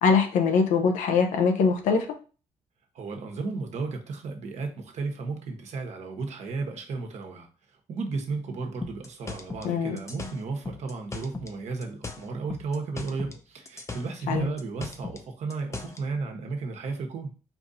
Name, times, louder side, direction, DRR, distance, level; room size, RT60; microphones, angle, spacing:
voice 1, 0.0-2.1 9.6-10.0 14.3-14.5, left 5 dB, 80° left, 5 dB, 0.9 m, -22 dB
voice 2, 2.9-7.5 7.9-17.3, right 4 dB, 65° right, 4 dB, 1.1 m, -34 dB
sound 1, 8.8-11.6 11.8-13.4 13.7-16.0, left 3 dB, 25° left, 0.7 m, -38 dB
4.6 x 2.6 x 4.1 m, 0.36 s
supercardioid pair, 70°, 13 cm